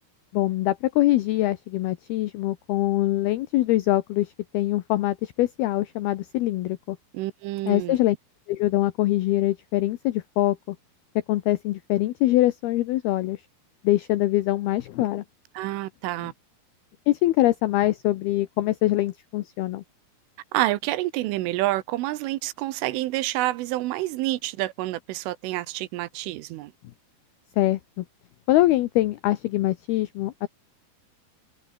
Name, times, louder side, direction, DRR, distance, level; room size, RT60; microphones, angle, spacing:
voice 1, 0.3-7.0 7.7-8.2 8.5-10.8 11.3-13.4 13.8-15.2 17.1-19.8 27.6-28.0 28.5-30.5, left 16 dB, 80° left, 2.2 m, -23 dB
voice 2, 7.1-8.0 15.6-16.3 20.5-26.7, right 17 dB, 85° right, 3.5 m, -28 dB
omnidirectional pair, 5.7 m